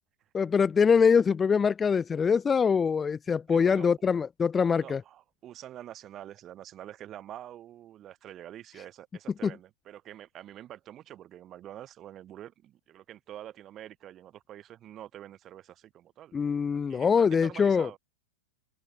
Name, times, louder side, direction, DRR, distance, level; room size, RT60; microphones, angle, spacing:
voice 1, 0.3-5.0 9.4-9.5 16.3-17.9, left 6 dB, 15° left, 0.3 m, -24 dB
voice 2, 3.5-3.9 4.8-16.3 16.9-18.0, right 12 dB, 30° right, 2.4 m, -46 dB
figure-of-eight pair, 95°, 0 cm